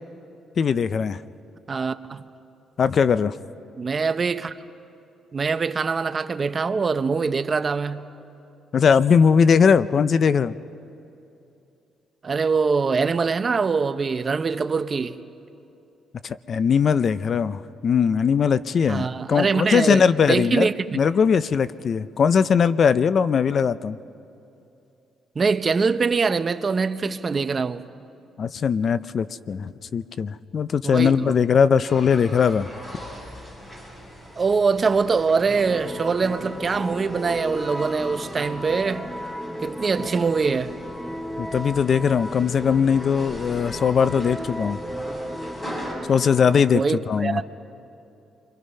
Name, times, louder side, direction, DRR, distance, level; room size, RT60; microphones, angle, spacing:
voice 1, 0.6-1.2 2.8-3.3 8.7-10.5 16.2-20.7 20.9-24.0 28.4-32.7 41.4-44.8 46.1-46.8 47.1-47.4, left 6 dB, 50° left, 0.6 m, -20 dB
voice 2, 1.7-2.2 3.8-4.5 5.3-8.1 12.2-15.2 18.9-21.0 25.3-27.8 30.8-31.3 34.4-39.1 39.6-40.7 46.7-47.4, right 5 dB, 35° right, 0.8 m, -23 dB
sound 1, 31.8-45.9, equal, 25° left, 7.4 m, -41 dB
sound 2, 35.6-46.8, equal, 5° left, 1.0 m, -35 dB
30.0 x 24.0 x 5.5 m
cardioid pair, 90°, 0 cm